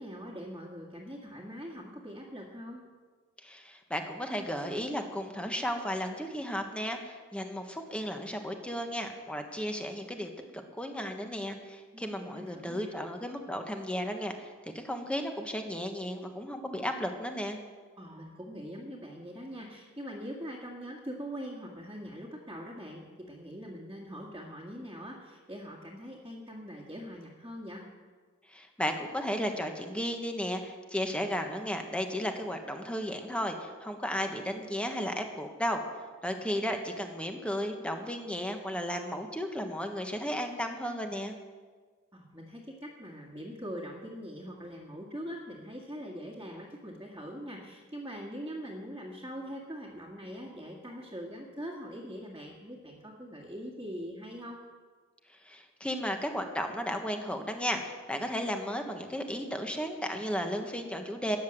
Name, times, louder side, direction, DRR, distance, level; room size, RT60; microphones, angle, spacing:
voice 1, 0.0-2.8 11.9-12.9 18.0-27.9 42.1-54.6, equal, 15° right, -5 dB, 1.9 m, -42 dB
voice 2, 3.4-17.6 28.5-35.8 36.2-41.3 55.4-61.4, equal, 5° left, 4 dB, 1.4 m, -34 dB
14.0 x 9.8 x 7.7 m, 1.5 s
head